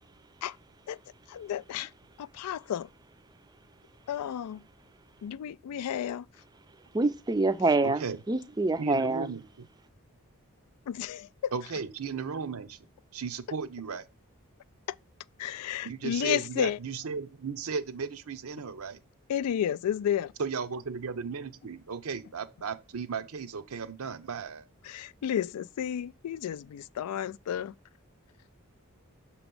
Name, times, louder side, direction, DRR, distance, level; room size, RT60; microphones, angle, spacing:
voice 1, 1.3-1.9 2.2-2.9 4.1-4.6 5.2-6.3 10.9-11.5 14.9-15.0 15.4-16.8 19.3-20.3 24.8-27.7, left 9 dB, 90° left, 0.3 m, -32 dB
voice 2, 6.9-9.3, right 2 dB, 20° right, 0.4 m, -26 dB
voice 3, 7.8-8.2 8.8-9.7 11.5-12.8 13.1-14.0 15.8-19.0 20.4-24.7, right 5 dB, 75° right, 0.6 m, -35 dB
6.9 x 3.0 x 5.2 m
head